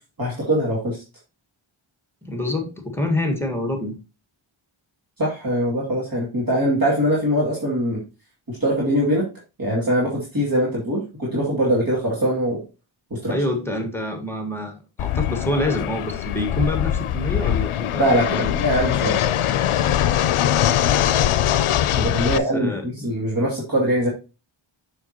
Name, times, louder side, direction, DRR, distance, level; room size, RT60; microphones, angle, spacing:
voice 1, 0.2-1.0 5.2-8.0 8.5-9.2 9.6-12.6 13.1-13.3 18.0-19.2 21.9-24.1, equal, 45° right, -4 dB, 2.6 m, -22 dB
voice 2, 2.2-3.9 13.3-18.6 22.2-23.2, left 1 dB, 5° left, 4 dB, 1.7 m, -27 dB
Fixed-wing aircraft airplane, 15.0-22.4, left 11 dB, 80° left, 0.6 m, -22 dB
7.2 x 6.5 x 2.9 m, 0.29 s
wide cardioid pair, 105°, 50 cm